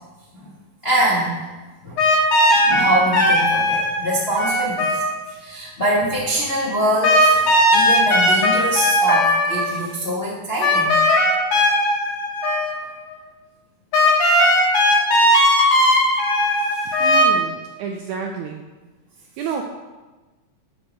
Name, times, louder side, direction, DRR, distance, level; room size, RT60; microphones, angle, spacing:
voice 1, 0.8-1.4 1.8-2.0 2.5-11.0 16.8-17.1, equal, 35° left, -7 dB, 1.0 m, -24 dB
sound 1, 2.0-5.3 7.0-9.8 10.6-12.8 13.1-13.2 13.9-17.2, left 1 dB, 85° left, 4.0 m, -17 dB
voice 2, 17.0-18.6 19.4-19.6, right 6 dB, 80° right, 3 dB, 1.8 m, -29 dB
9.1 x 4.7 x 6.2 m, 1.2 s
omnidirectional pair, 4.0 m